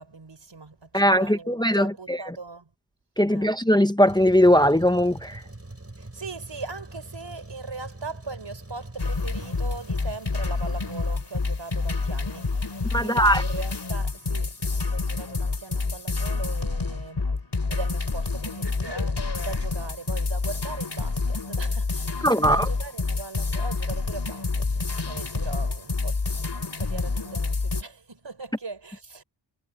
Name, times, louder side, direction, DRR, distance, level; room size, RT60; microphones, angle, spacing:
voice 1, 0.0-2.7 3.3-3.6 6.0-12.5 13.0-17.2 17.7-26.2 26.8-29.2, right 3 dB, 75° right, 4.9 m, -39 dB
voice 2, 0.9-2.2 3.2-5.4 12.9-13.4 22.2-22.7, equal, 10° left, 0.9 m, -20 dB
Truck, 4.1-11.1, right 2 dB, 35° right, 6.5 m, -43 dB
sound 1, 9.0-27.8, left 3 dB, 65° left, 3.7 m, -28 dB
wide cardioid pair, 75°, 44 cm